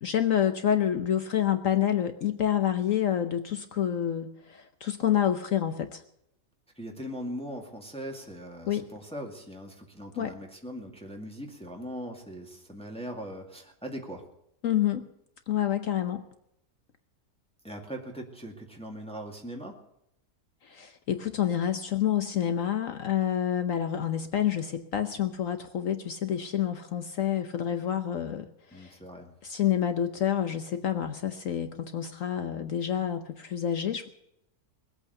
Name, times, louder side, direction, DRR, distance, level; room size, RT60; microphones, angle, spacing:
voice 1, 0.0-6.0 8.7-8.9 10.2-10.3 14.6-15.1 15.5-16.2 20.6-29.0 29.4-34.1, left 10 dB, 60° left, 9 dB, 1.1 m, -28 dB
voice 2, 6.8-14.2 17.6-19.8 28.7-29.3, equal, 5° left, 1 dB, 2.1 m, -40 dB
20.0 x 8.6 x 6.8 m, 0.77 s
omnidirectional pair, 1.7 m